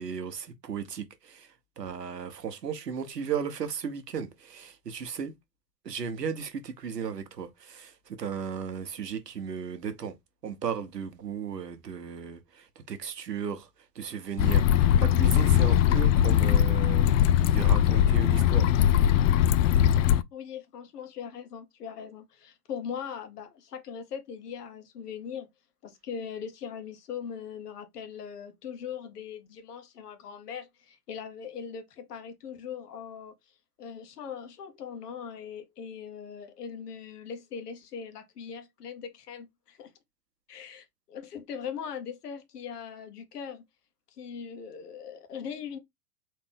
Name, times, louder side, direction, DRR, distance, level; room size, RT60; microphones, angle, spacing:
voice 1, 0.0-5.3 5.8-10.1 10.4-13.7 13.9-17.1 17.4-18.7, right 7 dB, 85° right, 1.0 m, -35 dB
sound 1, 14.4-20.2, left 10 dB, 55° left, 0.5 m, -21 dB
voice 2, 20.3-25.5 25.8-33.3 33.8-39.9 40.5-43.6 44.1-45.8, left 7 dB, 75° left, 1.2 m, -40 dB
4.2 x 3.3 x 3.4 m
hypercardioid pair, 95°, 47 cm